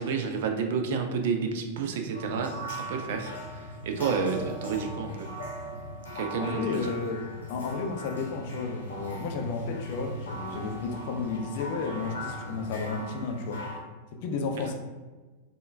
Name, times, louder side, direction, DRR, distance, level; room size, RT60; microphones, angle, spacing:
voice 1, 0.0-3.3 3.8-5.3 6.2-6.8, right 5 dB, 55° right, 5 dB, 0.3 m, -30 dB
sound 1, 2.1-13.8, equal, 70° left, 0.8 m, -38 dB
voice 2, 6.4-7.2 7.5-13.6 14.2-14.8, left 4 dB, 50° left, 3 dB, 0.4 m, -32 dB
3.5 x 2.2 x 2.5 m, 1.3 s
figure-of-eight pair, 90°, 0 cm